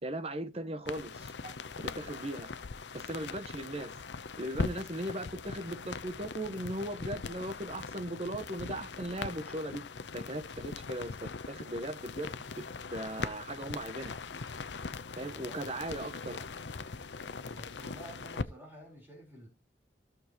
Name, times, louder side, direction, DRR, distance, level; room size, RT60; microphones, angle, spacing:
voice 1, 0.0-2.5 2.9-3.9 4.4-9.8 10.1-12.6 12.9-14.1 15.2-16.4, right 1 dB, 35° right, 1.1 m, -38 dB
sound 1, 0.9-18.4, left 4 dB, 75° left, 0.7 m, -41 dB
voice 2, 15.2-15.7 17.5-19.5, equal, 10° right, 4.2 m, -51 dB
15.5 x 6.6 x 3.0 m
head